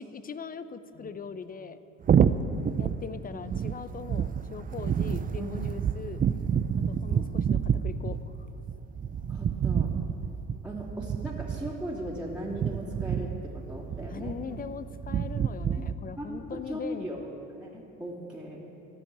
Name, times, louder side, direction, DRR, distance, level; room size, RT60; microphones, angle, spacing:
voice 1, 0.0-1.8 2.8-6.2 6.9-8.5 14.0-17.2, left 6 dB, 25° left, 14 dB, 0.6 m, -40 dB
sound 1, 2.0-15.9, right 7 dB, 25° right, 0.4 m, -29 dB
voice 2, 9.1-9.9 10.6-14.3 16.2-17.2 17.6-18.6, equal, 5° right, -6 dB, 2.7 m, -38 dB
15.0 x 5.2 x 8.7 m, 2.9 s
hypercardioid pair, 65°, 35 cm